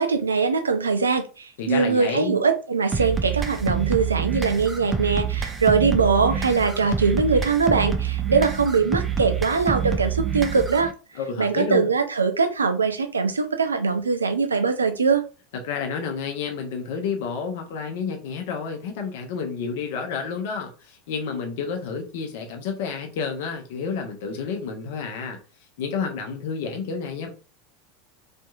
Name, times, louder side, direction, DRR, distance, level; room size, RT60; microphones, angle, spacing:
voice 1, 0.0-10.9 11.4-15.2, right 5 dB, 75° right, 0.4 m, -22 dB
voice 2, 1.6-2.4 11.1-11.9 15.6-25.4 25.8-27.3, left 5 dB, 55° left, 0.7 m, -30 dB
sound 1, 2.9-10.9, right 7 dB, 15° right, 0.4 m, -27 dB
2.7 x 2.5 x 2.3 m
figure-of-eight pair, 80°, 0 cm